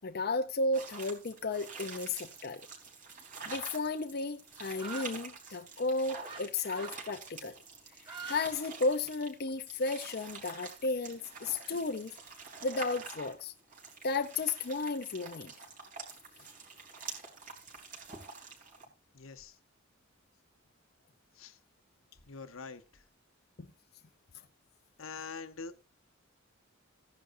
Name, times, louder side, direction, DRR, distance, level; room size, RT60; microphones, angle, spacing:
voice 1, 0.0-2.7 3.5-7.6 8.3-12.1 12.6-13.5 14.0-15.5, left 3 dB, 50° left, 0.7 m, -33 dB
sound 1, 0.7-18.8, right 4 dB, 40° right, 3.7 m, -47 dB
sound 2, 4.8-5.1 6.3-6.4 6.7-7.0 7.9-8.4 8.7-9.5, right 4 dB, 25° right, 3.6 m, -44 dB
voice 2, 19.1-19.6 21.3-21.6 22.2-23.0 25.0-25.8, left 5 dB, 85° left, 1.2 m, -45 dB
15.5 x 10.5 x 2.7 m
head